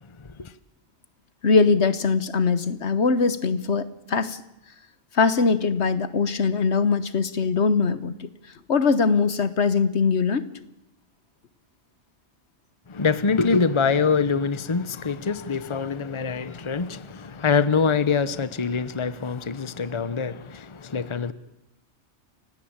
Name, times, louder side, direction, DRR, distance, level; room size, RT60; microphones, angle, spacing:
voice 1, 0.2-0.5 12.9-21.3, left 5 dB, 30° left, 0.9 m, -24 dB
voice 2, 1.4-4.4 5.1-8.3 8.7-10.6, left 4 dB, 75° left, 1.5 m, -22 dB
29.5 x 17.0 x 8.9 m
omnidirectional pair, 1.2 m